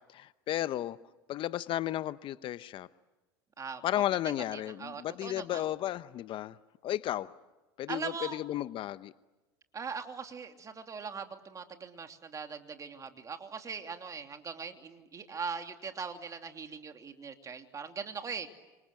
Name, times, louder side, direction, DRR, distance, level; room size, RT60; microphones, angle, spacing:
voice 1, 0.1-1.0 1.3-2.9 3.8-6.6 6.8-7.3 7.8-9.1, left 13 dB, 50° left, 14 dB, 0.9 m, -33 dB
voice 2, 4.5-5.6 7.9-8.4 9.7-18.5, right 5 dB, 30° right, 5 dB, 2.9 m, -41 dB
29.5 x 26.5 x 7.7 m, 1.1 s
hypercardioid pair, 85°, 11 cm